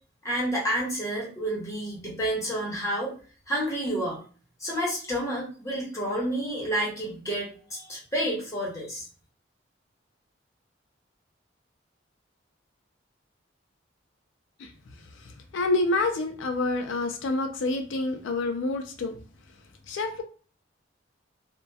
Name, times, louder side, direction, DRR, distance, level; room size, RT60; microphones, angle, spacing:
voice 1, 0.2-3.1 3.5-4.2 4.6-9.1, right 1 dB, 15° left, -4 dB, 0.8 m, -29 dB
voice 2, 15.2-19.2 19.9-20.2, left 2 dB, 80° left, 5 dB, 0.4 m, -28 dB
2.7 x 2.1 x 2.3 m, 0.39 s
head